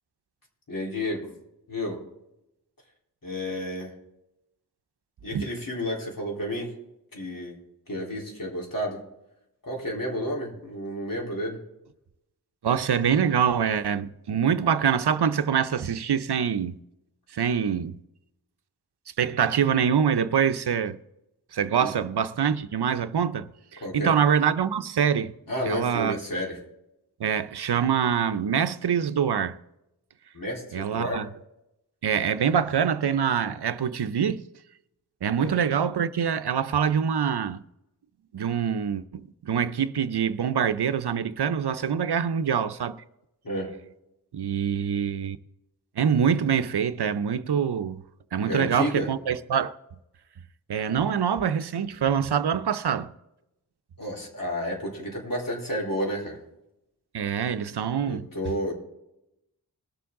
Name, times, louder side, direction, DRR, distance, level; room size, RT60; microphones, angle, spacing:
voice 1, 0.7-1.3 1.7-2.0 3.2-3.9 5.2-6.7 7.1-7.6 7.9-9.0 9.6-11.6 21.8-21.9 23.8-24.1 25.5-26.6 30.3-31.3 35.4-35.5 43.4-43.7 48.5-49.1 54.0-56.4 58.0-58.7, equal, 55° left, 3.7 m, -31 dB
voice 2, 12.6-16.8 17.3-18.0 19.2-21.0 21.5-25.3 25.7-26.2 27.2-29.6 30.7-31.3 32.0-34.5 35.2-37.6 38.3-43.0 44.3-45.4 46.0-48.0 48.3-49.7 50.7-53.1 57.1-58.3, right 7 dB, 80° right, 0.7 m, -25 dB
20.5 x 7.0 x 3.7 m
wide cardioid pair, 45°, 39 cm